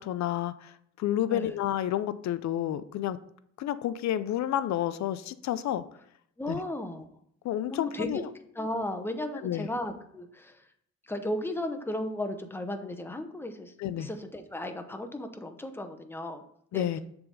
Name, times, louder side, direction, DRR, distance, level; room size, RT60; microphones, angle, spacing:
voice 1, 0.0-3.2 3.6-5.8 6.5-6.6 7.4-8.3 9.4-9.7 13.8-14.1 16.7-17.0, left 11 dB, 65° left, 14 dB, 0.5 m, -30 dB
voice 2, 6.4-7.1 7.7-8.2 8.6-10.5 11.1-13.7 14.0-16.4 16.7-16.9, left 1 dB, 5° left, 6 dB, 0.8 m, -35 dB
6.9 x 3.6 x 5.3 m, 0.70 s
cardioid pair, 90°, 30 cm